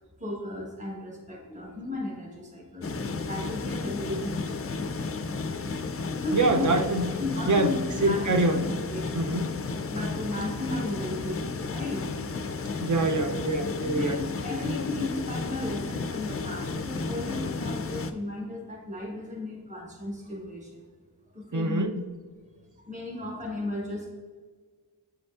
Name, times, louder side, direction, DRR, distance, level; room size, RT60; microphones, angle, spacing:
voice 1, 0.2-3.0 3.3-4.7 6.1-6.7 7.2-7.8 8.0-8.6 8.9-9.4 9.9-12.6 13.9-20.8 21.3-21.9 22.8-24.1, left 2 dB, 15° right, -2 dB, 1.2 m, -35 dB
sound 1, 2.8-18.1, left 3 dB, 35° left, 0.4 m, -33 dB
voice 2, 6.3-7.1 7.5-8.7 9.1-9.6 12.8-14.1 21.5-22.0, right 2 dB, 45° right, 6 dB, 0.6 m, -25 dB
8.0 x 5.1 x 2.4 m, 1.5 s
wide cardioid pair, 80°, 42 cm